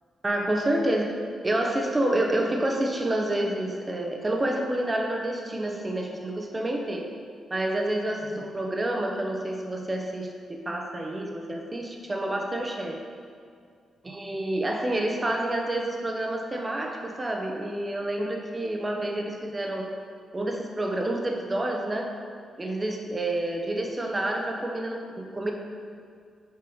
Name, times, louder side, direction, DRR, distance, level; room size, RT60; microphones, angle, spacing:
voice 1, 0.2-1.1 1.4-7.0 7.5-10.3 10.7-12.9 14.0-19.9 20.3-22.1 22.6-25.5, right 1 dB, 20° right, 2 dB, 0.8 m, -28 dB
6.9 x 4.7 x 4.8 m, 2.2 s
cardioid pair, 135°, 0 cm